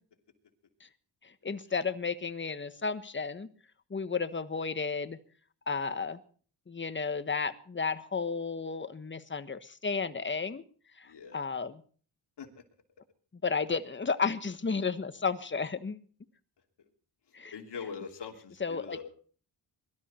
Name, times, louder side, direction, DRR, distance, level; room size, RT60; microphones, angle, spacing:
voice 1, 1.2-3.5 3.9-5.2 5.7-6.2 6.7-10.6 11.0-11.8 13.4-16.0 17.3-17.5 18.6-19.0, left 5 dB, 25° left, 11 dB, 1.3 m, -33 dB
voice 2, 11.0-11.4 12.4-12.6 17.3-19.1, left 6 dB, 65° left, 3 dB, 3.1 m, -43 dB
22.5 x 13.0 x 4.4 m, 0.43 s
cardioid pair, 100°, 44 cm